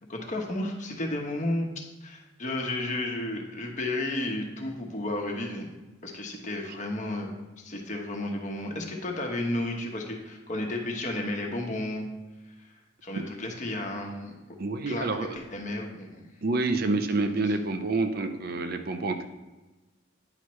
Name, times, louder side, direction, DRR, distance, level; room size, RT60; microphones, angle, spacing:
voice 1, 0.1-5.7 6.0-12.1 12.6-12.7 13.0-14.3 14.9-15.1 15.3-16.2 17.2-17.3, left 1 dB, 40° left, 1 dB, 1.1 m, -32 dB
voice 2, 14.6-15.4 16.4-19.2, right 3 dB, 50° right, 7 dB, 0.5 m, -28 dB
9.7 x 5.7 x 3.2 m, 1.1 s
head